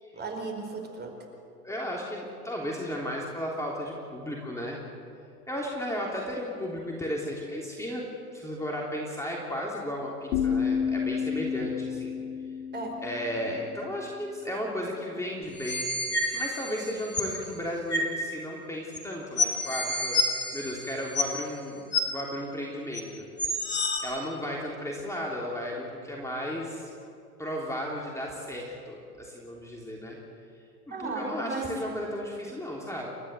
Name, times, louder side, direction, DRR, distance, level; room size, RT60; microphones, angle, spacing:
voice 1, 0.1-1.1 12.7-12.9 30.9-31.7, right 3 dB, 20° right, 3 dB, 4.8 m, -35 dB
voice 2, 1.6-4.8 5.5-8.0 8.3-12.1 13.0-20.2 20.5-23.2 24.0-26.9 27.4-30.2 30.9-33.1, equal, 5° left, -2 dB, 3.4 m, -34 dB
sound 1, 10.3-14.2, left 7 dB, 70° left, 2.1 m, -31 dB
sound 2, 15.5-17.3 17.9-18.1 18.9-19.0 19.4-21.5 21.9-22.0 22.9-23.0 23.4-24.0, left 2 dB, 20° left, 4.1 m, -29 dB
30.0 x 13.5 x 8.2 m, 2.4 s
hypercardioid pair, 95°, 47 cm